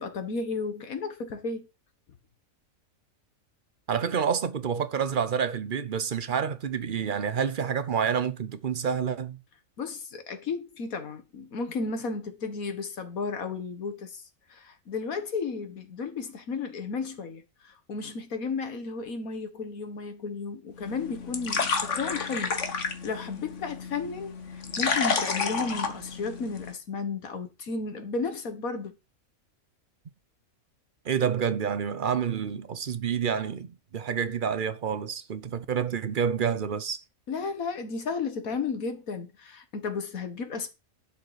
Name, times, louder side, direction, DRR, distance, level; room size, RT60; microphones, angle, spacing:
voice 1, 0.0-1.7 9.8-14.2 14.5-29.0 37.3-40.7, left 4 dB, 75° left, 2.0 m, -33 dB
voice 2, 3.9-9.4 31.0-37.0, right 7 dB, 45° right, 0.8 m, -28 dB
sound 1, 20.8-26.7, left 5 dB, 55° left, 1.7 m, -31 dB
11.5 x 6.6 x 5.0 m
omnidirectional pair, 1.5 m